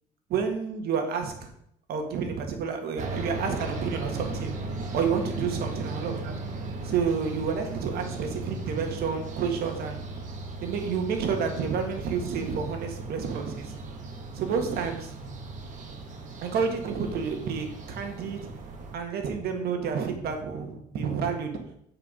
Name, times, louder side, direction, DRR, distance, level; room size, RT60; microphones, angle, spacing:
voice 1, 0.3-1.5 1.9-4.5 4.9-6.3 6.8-10.0 10.6-13.8 14.3-15.1 16.4-18.5 18.9-21.5, right 6 dB, 70° right, 4 dB, 1.7 m, -29 dB
sound 1, 3.0-19.0, right 2 dB, 45° right, 1.6 m, -37 dB
8.5 x 4.9 x 5.2 m, 0.72 s
cardioid pair, 110°, 17 cm